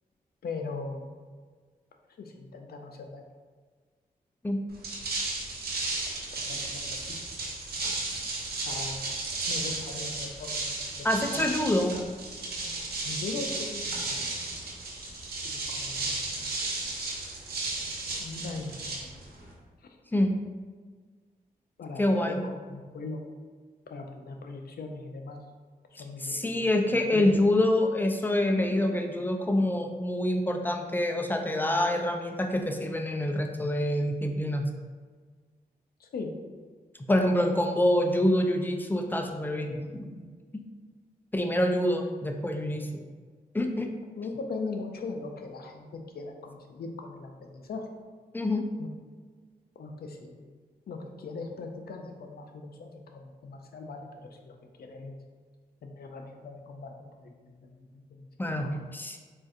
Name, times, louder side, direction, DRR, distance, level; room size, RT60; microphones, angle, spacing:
voice 1, 0.4-1.2 2.2-3.2 6.4-7.0 8.6-11.4 13.0-14.2 15.4-16.4 18.2-19.2 21.8-22.4 22.7-23.2 23.9-25.4 25.9-27.3 36.0-36.3 44.1-47.9 48.8-48.9 49.8-50.5 50.9-55.2 55.8-58.9, left 3 dB, 70° left, 3 dB, 0.5 m, -40 dB
sound 1, 4.7-19.5, right 2 dB, 70° right, 0.7 m, -34 dB
voice 2, 11.0-11.9 20.1-20.4 22.0-22.4 26.2-34.7 37.1-40.1 40.5-40.6 41.3-43.0 43.5-43.9 48.3-48.7 58.4-59.2, left 1 dB, 10° left, 4 dB, 0.4 m, -26 dB
3.8 x 2.5 x 2.5 m, 1.5 s
cardioid pair, 55°, 16 cm